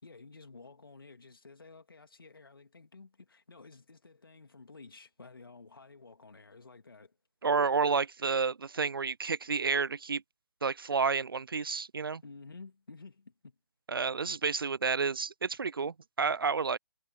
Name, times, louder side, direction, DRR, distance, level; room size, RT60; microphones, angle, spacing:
voice 1, 0.0-7.2 12.2-13.6, left 4 dB, 85° left, 2.7 m, -52 dB
voice 2, 7.4-10.2 10.6-12.2 13.9-16.8, right 5 dB, 90° right, 0.4 m, -30 dB
figure-of-eight pair, 150°, 11 cm